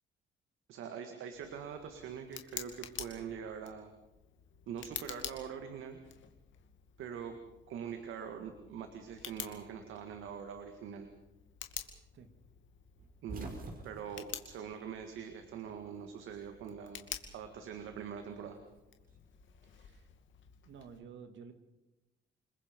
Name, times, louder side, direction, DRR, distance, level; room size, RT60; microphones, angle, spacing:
voice 1, 0.7-3.9 4.7-6.0 7.0-7.4 7.7-11.1 13.2-13.5 13.8-17.1 17.3-18.6, right 7 dB, 85° right, 6 dB, 2.0 m, -43 dB
Tick, 1.3-21.0, left 9 dB, 75° left, 2.5 m, -49 dB
sound 1, 13.0-15.5 15.8-16.9 18.0-19.5, right 3 dB, 45° right, 5.4 m, -48 dB
voice 2, 19.6-20.1 20.6-21.5, right 6 dB, 70° right, 8 dB, 2.3 m, -52 dB
29.0 x 21.0 x 5.3 m, 0.99 s
cardioid pair, 90°, 20 cm